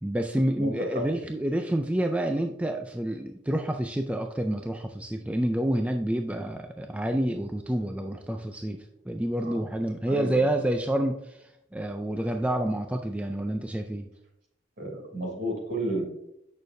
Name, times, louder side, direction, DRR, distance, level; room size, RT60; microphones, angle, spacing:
voice 1, 0.0-14.1, right 1 dB, 5° right, 4 dB, 0.3 m, -28 dB
voice 2, 0.5-0.9 9.4-9.6 10.1-10.4 14.8-16.0, right 1 dB, 55° right, 0 dB, 3.0 m, -32 dB
8.7 x 6.3 x 2.6 m, 0.80 s
head